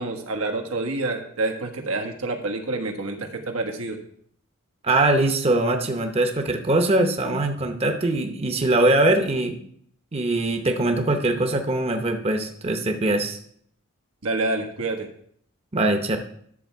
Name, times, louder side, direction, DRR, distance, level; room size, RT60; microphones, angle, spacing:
voice 1, 0.0-4.0 14.2-15.1, right 2 dB, 90° right, 4 dB, 1.5 m, -28 dB
voice 2, 4.8-9.6 10.1-13.4 15.7-16.2, right 2 dB, 30° right, 5 dB, 0.8 m, -22 dB
11.0 x 6.8 x 4.6 m, 0.66 s
head